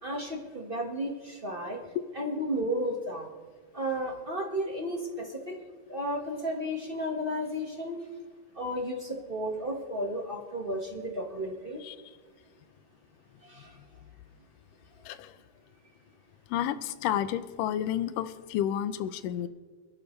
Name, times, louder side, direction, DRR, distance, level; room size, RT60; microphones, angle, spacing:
voice 1, 0.0-1.8 2.1-3.3 3.7-5.6 5.9-8.0 8.6-11.8 13.5-13.7, equal, 45° right, -1 dB, 0.7 m, -33 dB
voice 2, 16.5-19.5, left 11 dB, 85° left, 13 dB, 2.3 m, -31 dB
27.5 x 11.5 x 3.2 m, 1.5 s
omnidirectional pair, 3.7 m